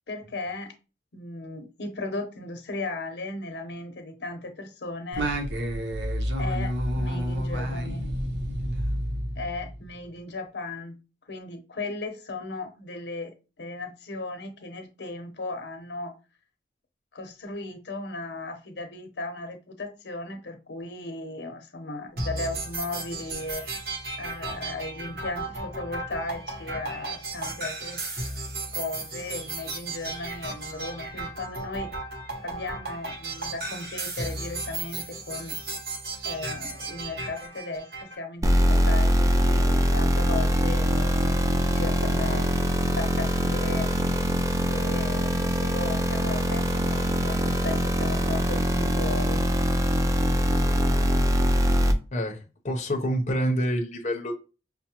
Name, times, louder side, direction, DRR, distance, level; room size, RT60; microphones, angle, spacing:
voice 1, 0.1-0.7 1.1-5.3 6.4-8.1 9.4-11.0 11.3-16.2 17.1-23.6 24.2-28.0 28.7-31.9 32.4-35.6 36.2-42.5 42.9-43.9 44.6-49.5, left 2 dB, 80° left, 6 dB, 0.7 m, -36 dB
Singing, 5.1-9.9, equal, 90° right, 0.7 m, -29 dB
sound 1, 22.2-38.1, right 2 dB, 60° right, 1.0 m, -35 dB
sound 2, 38.4-51.9, equal, 20° right, 0.3 m, -23 dB
voice 2, 52.1-54.3, equal, 40° left, 1 dB, 0.6 m, -27 dB
5.6 x 2.1 x 2.9 m, 0.31 s
head